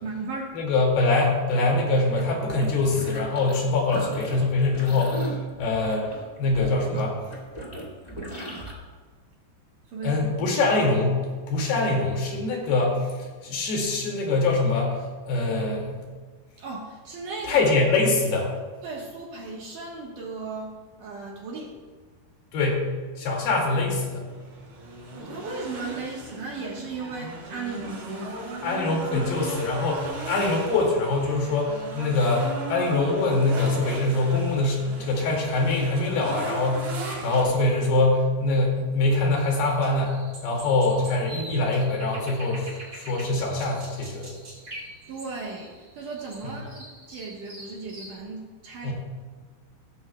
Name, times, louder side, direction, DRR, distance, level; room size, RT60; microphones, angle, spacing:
voice 1, 0.0-0.5 9.9-10.3 16.6-17.7 18.8-21.7 25.1-28.6 45.1-48.9, right 4 dB, 60° right, -2 dB, 2.5 m, -36 dB
voice 2, 0.5-6.1 6.4-7.2 10.0-16.0 17.5-18.5 22.5-22.9 23.2-24.3 28.6-44.3 46.4-46.5 48.8-48.9, left 2 dB, 70° left, -1 dB, 4.3 m, -24 dB
sound 1, 2.1-3.6 3.9-8.7, equal, 20° left, 0.9 m, -37 dB
sound 2, 24.2-37.4, right 1 dB, 85° right, 6.5 m, -37 dB
sound 3, 39.4-48.2, right 1 dB, 30° right, 1.7 m, -44 dB
16.5 x 14.0 x 2.3 m, 1.5 s
omnidirectional pair, 4.9 m